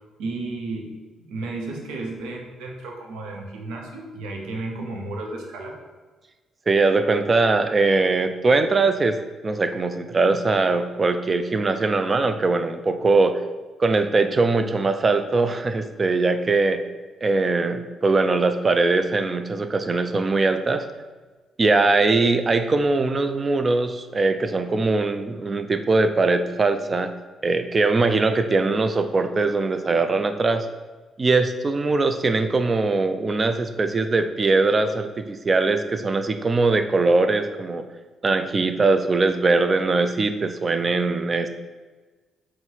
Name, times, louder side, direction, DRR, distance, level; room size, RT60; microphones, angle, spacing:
voice 1, 0.2-5.8, right 2 dB, 85° right, 0 dB, 0.6 m, -33 dB
voice 2, 6.7-13.4 13.8-16.8 17.2-20.9 21.6-27.1 27.4-30.7 31.2-37.8 38.2-41.5, right 3 dB, 40° right, 9 dB, 0.4 m, -21 dB
3.9 x 2.1 x 4.4 m, 1.3 s
supercardioid pair, 60°, 0 cm